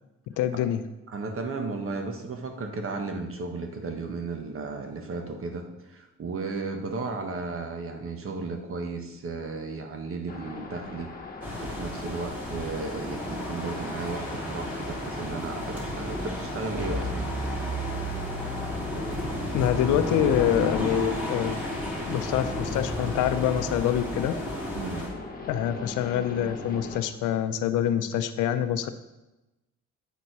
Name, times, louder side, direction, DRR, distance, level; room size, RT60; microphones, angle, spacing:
voice 1, 0.4-0.8 19.5-21.6 22.1-24.3 25.5-28.9, left 10 dB, 90° left, 10 dB, 0.6 m, -26 dB
voice 2, 1.1-11.1 11.6-17.3 24.7-25.0, right 3 dB, 45° right, 4 dB, 1.2 m, -34 dB
sound 1, 10.3-27.0, left 3 dB, 30° left, 1.4 m, -40 dB
sound 2, 11.4-25.1, equal, 5° right, 2.4 m, -32 dB
8.3 x 4.1 x 4.7 m, 1.0 s
cardioid pair, 90°, 30 cm